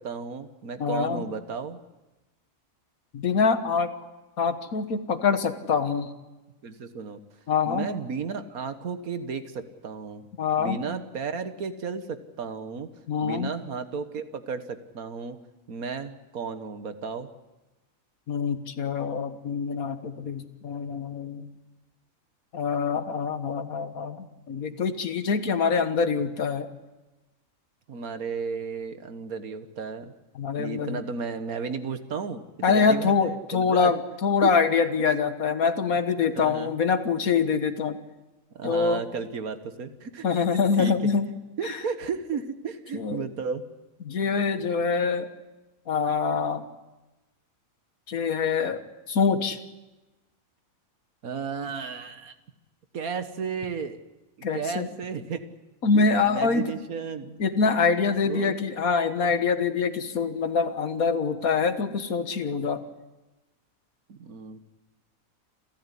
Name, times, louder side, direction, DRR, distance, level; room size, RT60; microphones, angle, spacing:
voice 1, 0.0-1.8 6.6-7.2 7.7-10.2 10.6-12.9 13.2-15.4 15.7-17.3 27.9-30.1 30.6-33.9 34.4-34.6 35.0-35.1 36.2-36.8 38.6-40.9 41.6-43.6 51.2-52.3 52.9-54.0 54.4-55.5 55.9-57.4 58.2-58.6 64.1-64.6, right 5 dB, 85° right, 10 dB, 1.8 m, -34 dB
voice 2, 0.8-1.2 3.1-3.9 4.4-6.1 7.5-7.9 10.4-10.8 13.1-13.5 18.3-21.5 22.5-26.7 30.4-31.0 32.6-38.0 38.6-39.0 40.2-41.2 41.6-41.8 42.9-43.2 44.1-45.3 45.9-46.7 48.1-48.8 49.1-49.6 54.4-54.9 55.8-56.6 57.4-62.8, left 5 dB, 80° left, 10 dB, 1.9 m, -25 dB
28.5 x 13.5 x 9.9 m, 1.1 s
omnidirectional pair, 1.5 m